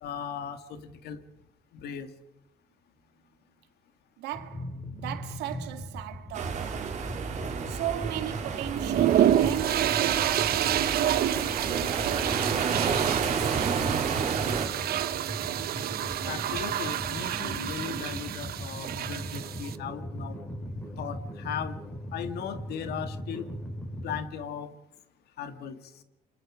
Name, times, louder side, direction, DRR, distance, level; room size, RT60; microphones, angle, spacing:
voice 1, 0.0-1.2 1.7-2.1 16.3-20.4 21.0-21.8 22.1-23.5 24.0-24.7 25.4-25.8, left 7 dB, 70° left, 2.2 m, -37 dB
voice 2, 4.2-14.2, right 13 dB, 90° right, 2.1 m, -38 dB
sound 1, 4.3-24.2, equal, 10° left, 5.2 m, -40 dB
sound 2, 6.3-14.7, right 6 dB, 45° right, 4.1 m, -31 dB
sound 3, 8.8-19.7, right 11 dB, 65° right, 1.2 m, -28 dB
28.5 x 25.0 x 5.1 m
cardioid pair, 110°, 17 cm